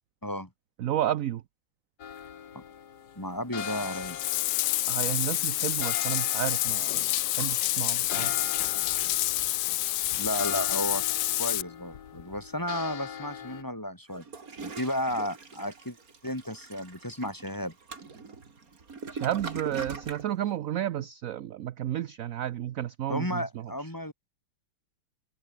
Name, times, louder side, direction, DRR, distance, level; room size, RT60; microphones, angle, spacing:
voice 1, 0.8-1.4 4.9-8.4 19.1-23.7, right 12 dB, 65° right, 0.8 m, -32 dB
sound 1, 2.0-13.6, left 8 dB, 60° left, 1.8 m, -42 dB
voice 2, 3.2-4.2 10.2-11.0 11.4-14.3 14.6-16.0 16.2-17.7 23.1-24.1, equal, 10° left, 3.6 m, -33 dB
Bathtub (filling or washing), 3.6-11.6, left 16 dB, 80° left, 1.3 m, -28 dB
Toilet flush, 14.1-20.3, right 4 dB, 45° right, 2.9 m, -41 dB
omnidirectional pair, 2.1 m